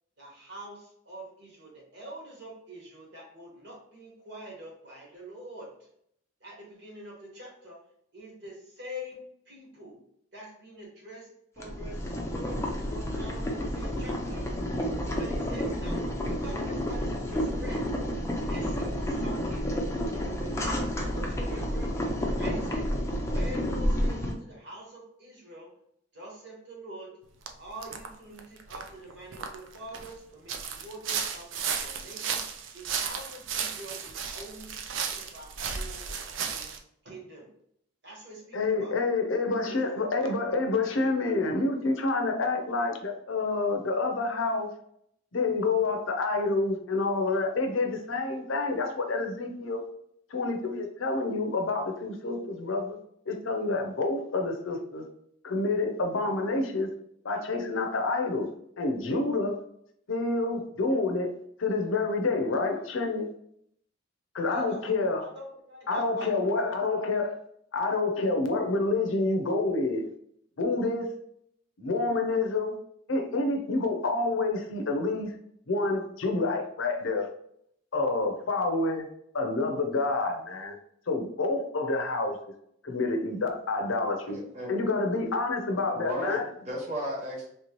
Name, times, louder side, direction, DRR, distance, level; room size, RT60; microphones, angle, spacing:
voice 1, 0.2-5.9 6.4-7.8 8.1-10.0 10.3-11.3 11.5-14.5 15.0-18.0 18.4-19.7 20.2-22.1 22.4-22.9 23.2-25.7 26.1-27.2 27.6-36.1 36.4-36.7 37.0-37.5 38.0-39.0 39.4-40.4 64.4-64.9 65.2-66.9, right 1 dB, 60° right, 1.4 m, -45 dB
Boiling, 11.6-24.3, equal, 15° left, 0.5 m, -30 dB
sound 1, 27.5-27.6 27.8-28.1 28.4-30.1 30.5-36.8, right 6 dB, 75° right, 0.5 m, -34 dB
voice 2, 38.5-44.7 45.3-49.8 50.3-53.0 53.3-55.0 55.4-56.9 57.2-58.5 58.8-59.6 60.1-63.3 64.3-65.3 65.9-67.4 67.7-70.1 70.6-71.1 71.8-72.7 73.1-75.3 75.7-77.3 77.9-79.1 79.3-80.8 81.1-82.4 82.8-84.4 84.7-86.5, left 3 dB, 85° left, 0.6 m, -28 dB
voice 3, 84.3-84.7 85.7-87.5, right 1 dB, 35° right, 1.2 m, -35 dB
3.2 x 2.9 x 3.0 m
head